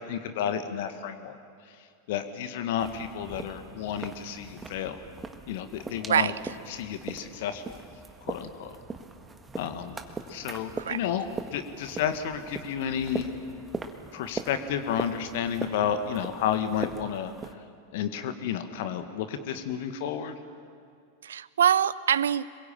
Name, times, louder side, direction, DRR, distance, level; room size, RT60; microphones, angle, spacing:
voice 1, 0.0-1.3 2.1-5.0 5.5-6.3 6.7-7.8 8.3-8.8 9.5-10.0 10.3-13.3 14.1-17.3 17.9-20.3, left 8 dB, 50° left, 9 dB, 1.8 m, -31 dB
sound 1, 2.8-17.5, right 4 dB, 15° right, 1.8 m, -40 dB
voice 2, 21.2-22.5, right 9 dB, 65° right, 19 dB, 0.7 m, -24 dB
26.5 x 22.5 x 8.8 m, 2.3 s
figure-of-eight pair, 90°, 0 cm